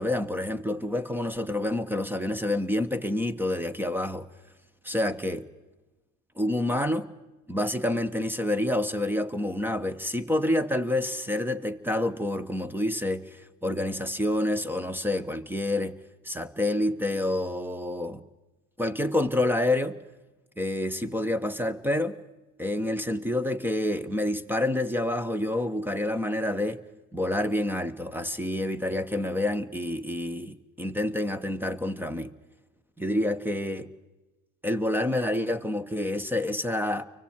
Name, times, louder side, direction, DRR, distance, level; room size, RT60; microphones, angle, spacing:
voice 1, 0.0-4.3 4.8-5.5 6.4-7.1 7.5-16.0 16.2-18.2 18.8-20.0 20.6-22.2 22.6-26.8 27.1-32.3 33.0-33.9 34.6-37.0, left 1 dB, 5° right, 1.4 m, -28 dB
30.0 x 24.0 x 4.7 m
hypercardioid pair, 80°, 40 cm